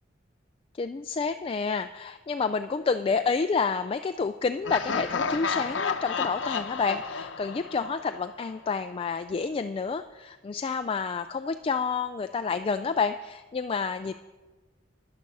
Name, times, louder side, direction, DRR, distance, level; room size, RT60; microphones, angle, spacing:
voice 1, 0.8-14.1, left 5 dB, 30° left, 9 dB, 0.3 m, -29 dB
Laughter, 4.6-8.5, left 5 dB, 75° left, 0.8 m, -31 dB
13.5 x 10.5 x 5.4 m, 1.2 s
head